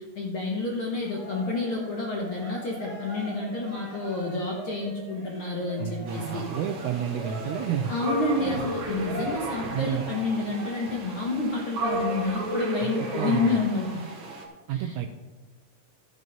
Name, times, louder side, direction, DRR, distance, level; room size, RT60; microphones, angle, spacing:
voice 1, 0.1-6.4 7.8-14.0 14.7-15.0, left 3 dB, 60° left, 0 dB, 1.4 m, -29 dB
Cheering, 1.0-11.1, equal, 15° left, 2.2 m, -42 dB
voice 2, 5.8-7.9 9.7-10.1 13.1-13.6 14.7-15.1, right 9 dB, 80° right, 7 dB, 1.7 m, -30 dB
sound 1, 6.1-14.4, right 2 dB, 45° right, 1.5 m, -34 dB
12.0 x 6.6 x 5.3 m, 1.2 s
omnidirectional pair, 3.8 m